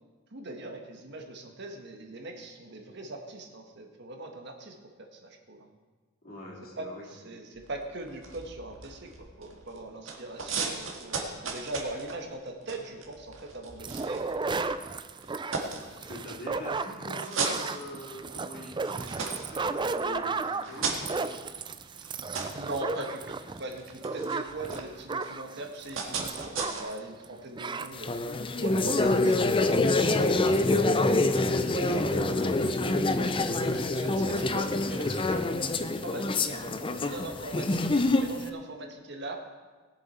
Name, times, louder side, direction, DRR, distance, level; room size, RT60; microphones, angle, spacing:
voice 1, 0.3-5.6 6.8-6.9 7.2-9.1 9.4-14.2 22.4-28.1 28.5-30.9 31.6-39.4, right 2 dB, 60° right, 3 dB, 1.4 m, -40 dB
voice 2, 6.2-7.4 16.0-21.5 31.4-31.6, left 1 dB, 50° left, -3 dB, 3.1 m, -44 dB
sound 1, 7.5-9.8 10.0-14.8 15.2-16.5 17.0-18.4 18.8-26.8, right 4 dB, 85° right, 1.7 m, -37 dB
sound 2, 13.8-27.0 27.2-27.3 27.6-27.9, right 4 dB, 25° right, 0.4 m, -34 dB
sound 3, 27.9-38.4, left 2 dB, 25° left, 0.6 m, -26 dB
19.5 x 7.3 x 4.3 m, 1.4 s
head